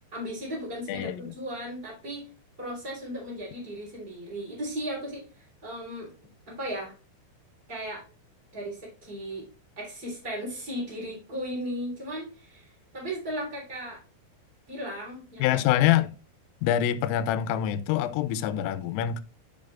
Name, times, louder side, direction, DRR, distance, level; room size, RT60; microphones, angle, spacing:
voice 1, 0.1-2.3 2.6-6.1 6.5-6.9 7.7-8.0 8.5-9.4 9.8-14.0 14.7-15.6, equal, 15° right, 2.7 m, -36 dB
voice 2, 0.9-1.3 15.4-16.1 16.6-19.2, left 11 dB, 90° left, 3.1 m, -25 dB
9.2 x 5.4 x 2.4 m
omnidirectional pair, 5.7 m